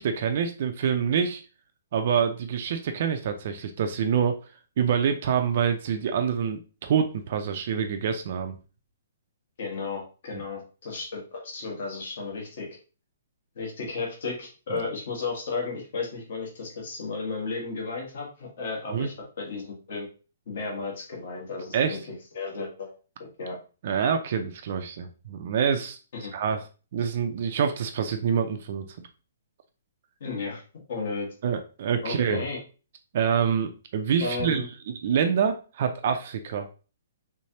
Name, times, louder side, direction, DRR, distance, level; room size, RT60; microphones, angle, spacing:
voice 1, 0.0-1.4 1.9-4.4 4.8-8.6 14.7-14.8 18.9-19.1 21.7-22.0 23.8-26.0 26.3-26.6 26.9-29.1 31.4-32.4 33.1-34.6 35.0-36.7, right 7 dB, 40° right, 6 dB, 0.4 m, -26 dB
voice 2, 9.6-12.7 13.5-20.1 20.5-22.0 22.3-22.9 23.4-23.6 26.1-26.3 30.2-30.6 30.9-31.3 32.0-32.6 34.2-34.7, left 4 dB, 50° left, -1 dB, 1.2 m, -33 dB
3.4 x 3.2 x 2.8 m, 0.35 s
hypercardioid pair, 175°, 0 cm